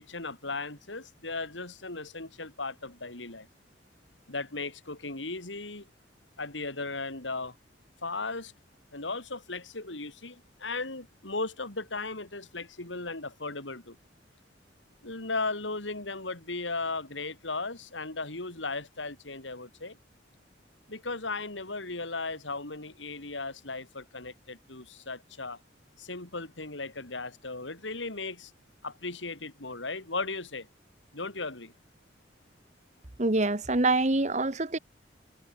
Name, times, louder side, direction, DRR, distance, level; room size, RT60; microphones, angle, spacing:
voice 1, 0.0-3.5 4.3-5.9 6.4-7.6 8.0-8.5 8.9-14.0 15.0-20.0 20.9-25.6 26.0-28.5 28.8-30.7 31.1-31.7, left 3 dB, 85° left, 4.3 m, -36 dB
voice 2, 33.2-34.8, right 2 dB, 40° right, 1.5 m, -25 dB
head